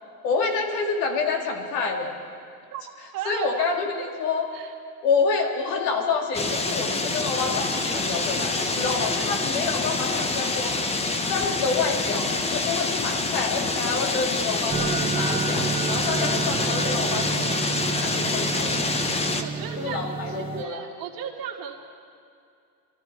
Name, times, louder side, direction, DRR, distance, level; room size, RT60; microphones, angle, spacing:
voice 1, 0.2-2.1 3.3-3.9 4.2-4.5 5.0-10.8 11.3-18.9 19.8-20.9, left 4 dB, 85° left, 2 dB, 2.3 m, -28 dB
voice 2, 3.1-3.7 4.0-4.1 4.5-4.7 8.7-9.7 19.4-21.8, right 8 dB, 45° right, 1 dB, 2.0 m, -36 dB
sound 1, 6.3-19.4, left 3 dB, 15° left, 0.7 m, -26 dB
sound 2, 14.7-20.6, right 6 dB, 15° right, 0.3 m, -30 dB
22.5 x 13.5 x 4.7 m, 2.4 s
cardioid pair, 140°, 46 cm